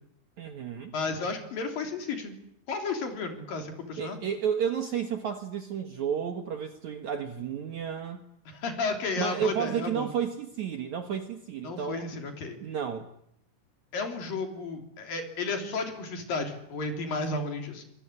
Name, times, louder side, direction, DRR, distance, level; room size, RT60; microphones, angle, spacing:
voice 1, 0.4-0.9 4.0-8.2 9.2-12.1 12.6-13.1, right 8 dB, 60° right, 7 dB, 2.1 m, -32 dB
voice 2, 0.9-2.3 2.7-4.2 8.5-10.1 11.6-12.6 13.9-17.8, left 3 dB, 60° left, 5 dB, 4.8 m, -33 dB
25.0 x 22.0 x 9.9 m, 0.75 s
omnidirectional pair, 4.8 m